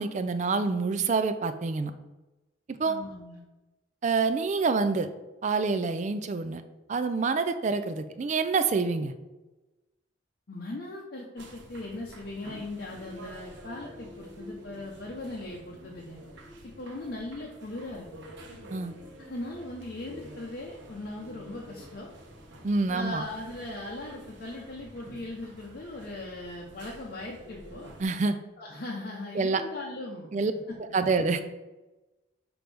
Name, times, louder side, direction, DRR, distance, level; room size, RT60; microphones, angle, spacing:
voice 1, 0.0-1.9 2.8-3.0 4.0-5.1 5.4-6.6 6.9-9.1 18.7-18.9 22.6-23.2 28.0-28.4 29.3-29.6 30.3-30.5 30.8-31.4, right 4 dB, 40° right, 10 dB, 0.3 m, -27 dB
voice 2, 2.8-3.4 10.5-16.2 16.8-18.3 19.2-22.1 22.9-27.9 28.6-30.4 30.7-31.0, left 2 dB, 55° left, -3 dB, 0.7 m, -39 dB
sound 1, 11.4-28.1, equal, 70° right, 1.0 m, -49 dB
6.1 x 5.1 x 3.4 m, 1.1 s
head